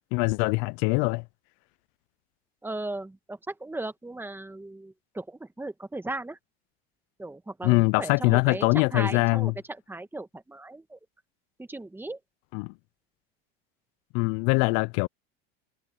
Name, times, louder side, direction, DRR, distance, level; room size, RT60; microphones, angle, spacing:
voice 1, 0.1-1.2 7.6-9.5 12.5-12.7 14.1-15.1, left 29 dB, 60° left, 0.4 m, -23 dB
voice 2, 2.6-6.4 7.2-9.5 9.9-11.0 11.7-12.2, right 2 dB, 5° right, 1.5 m, -36 dB
open air
supercardioid pair, 120°, 31 cm